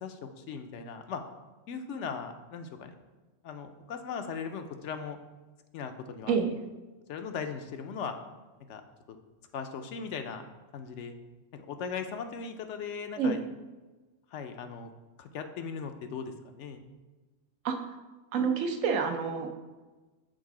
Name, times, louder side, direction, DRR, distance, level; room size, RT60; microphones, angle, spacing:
voice 1, 0.0-1.2 1.7-2.9 3.4-5.2 5.7-6.4 7.1-8.2 8.7-8.8 9.1-9.2 9.5-10.4 10.7-11.1 11.5-13.4 14.3-14.9 15.2-16.8, left 6 dB, 70° left, 7 dB, 0.9 m, -38 dB
voice 2, 18.3-19.6, right 5 dB, 85° right, 5 dB, 1.1 m, -28 dB
6.4 x 4.0 x 4.8 m, 1.2 s
omnidirectional pair, 1.3 m